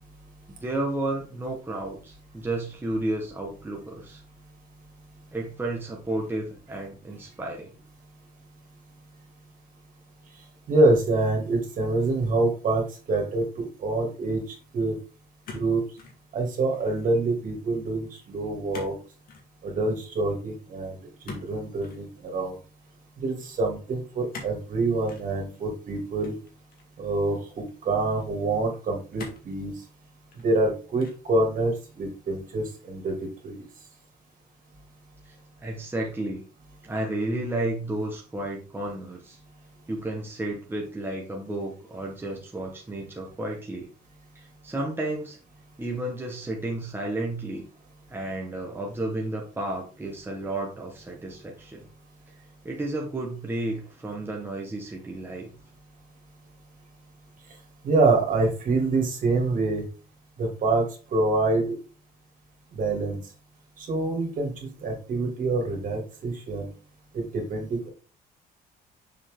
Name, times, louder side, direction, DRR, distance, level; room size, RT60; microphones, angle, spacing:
voice 1, 0.6-4.2 5.3-7.7 35.3-35.4 35.6-36.4 36.8-39.4 39.9-43.9 44.3-45.4 45.8-47.6 48.1-51.9 52.6-55.5, right 1 dB, 15° right, -1 dB, 1.4 m, -32 dB
voice 2, 10.7-14.4 14.7-15.0 15.5-15.8 16.3-19.0 19.6-21.0 21.2-22.6 23.2-26.4 27.0-29.7 30.4-33.2 33.4-33.6 57.8-59.8 60.4-60.8 61.1-61.7 62.7-63.2 63.8-66.7 67.1-67.9, right 2 dB, 50° right, 2 dB, 2.8 m, -26 dB
sound 1, 15.4-16.2 16.6-17.0 18.7-19.0 19.3-19.5 21.2-22.0 24.3-24.6 25.1-25.3 26.2-27.0 27.7-27.8 29.2-29.6 30.2-30.6 31.0-31.3, left 4 dB, 60° left, 2.1 m, -43 dB
6.8 x 4.5 x 3.8 m, 0.35 s
cardioid pair, 110°, 17 cm